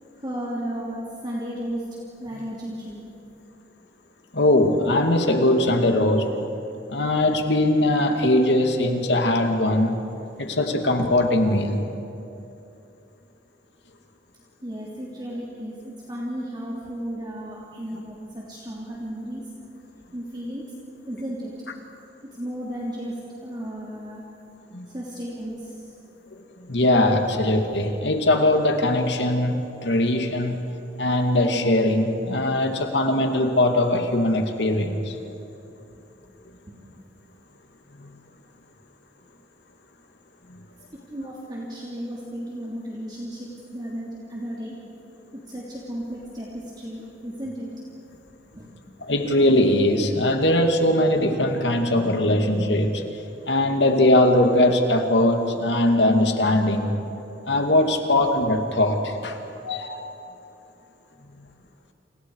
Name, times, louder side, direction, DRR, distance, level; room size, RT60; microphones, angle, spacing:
voice 1, 0.2-1.8 2.2-3.0 14.6-19.5 20.1-20.6 21.1-21.5 22.3-24.2 24.9-25.9 27.6-27.7 35.9-36.0 36.7-36.8 41.1-44.7 45.3-47.8 48.5-49.1, equal, 25° right, -5 dB, 3.0 m, -34 dB
voice 2, 4.3-6.3 6.9-10.0 10.4-11.8 24.7-24.9 26.3-30.6 31.0-35.2 38.0-38.1 40.5-40.6 49.1-53.0 53.5-57.0 57.5-59.4 59.6-60.1, left 1 dB, 90° left, 4 dB, 2.4 m, -21 dB
29.5 x 29.0 x 4.8 m, 2.8 s
head